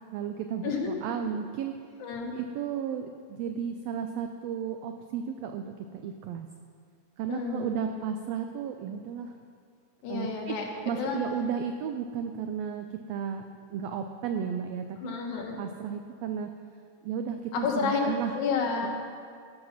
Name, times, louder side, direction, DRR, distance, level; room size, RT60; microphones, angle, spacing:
voice 1, 0.1-1.7 2.3-6.5 7.2-9.3 10.1-10.6 10.9-16.5 17.0-18.3 18.8-18.9, right 7 dB, 85° right, 6 dB, 1.4 m, -34 dB
voice 2, 2.0-2.3 7.3-7.8 10.0-11.2 15.0-15.6 17.5-18.9, left 5 dB, 75° left, 0 dB, 2.7 m, -30 dB
15.5 x 5.5 x 5.8 m, 2.2 s
omnidirectional pair, 3.5 m